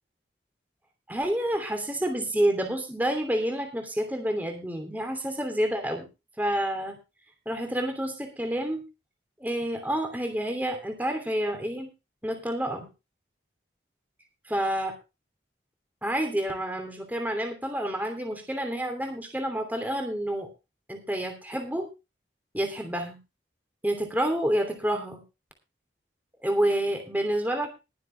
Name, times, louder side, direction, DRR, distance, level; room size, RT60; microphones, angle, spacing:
voice 1, 1.1-6.1 6.4-7.0 7.4-8.8 9.4-11.9 12.2-12.9 14.5-14.9 16.0-20.5 20.9-21.9 22.5-23.2 23.8-25.2 26.4-27.7, right 1 dB, 10° right, 4 dB, 2.9 m, -28 dB
21.5 x 7.4 x 3.3 m, 0.28 s
head